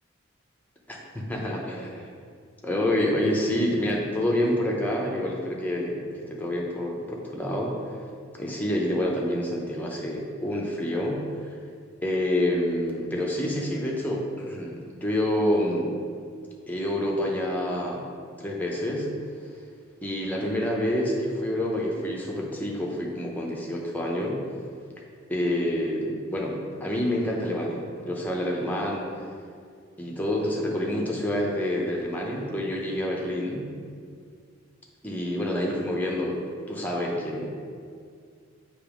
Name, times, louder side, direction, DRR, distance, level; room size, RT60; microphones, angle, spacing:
voice 1, 0.9-2.1 2.6-7.7 8.4-11.6 12.0-15.9 16.7-18.0 18.4-19.1 20.0-24.4 25.3-29.1 30.0-33.7 35.0-37.4, left 1 dB, 10° left, -2 dB, 0.7 m, -28 dB
6.7 x 3.0 x 5.0 m, 2.2 s
head